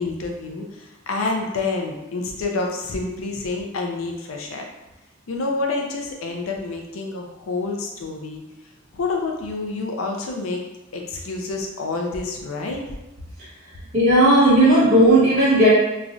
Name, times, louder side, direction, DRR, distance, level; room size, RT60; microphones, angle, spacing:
voice 1, 0.0-4.7 5.3-8.4 8.9-10.6 10.9-12.9, left 3 dB, 90° left, 1 dB, 0.5 m, -28 dB
voice 2, 13.9-15.7, right 1 dB, 35° right, -10 dB, 1.5 m, -14 dB
3.0 x 2.4 x 2.6 m, 1.0 s
head